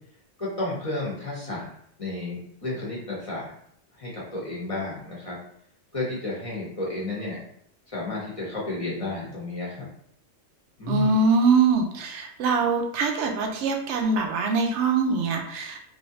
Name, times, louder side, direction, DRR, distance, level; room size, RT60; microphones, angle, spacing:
voice 1, 0.4-1.7 2.0-3.5 4.0-5.4 5.9-7.4 7.9-9.9 10.8-11.1, left 2 dB, 30° left, -5 dB, 1.0 m, -32 dB
voice 2, 10.9-15.8, right 4 dB, 70° right, 3 dB, 0.8 m, -23 dB
3.1 x 2.6 x 2.7 m, 0.69 s
omnidirectional pair, 1.3 m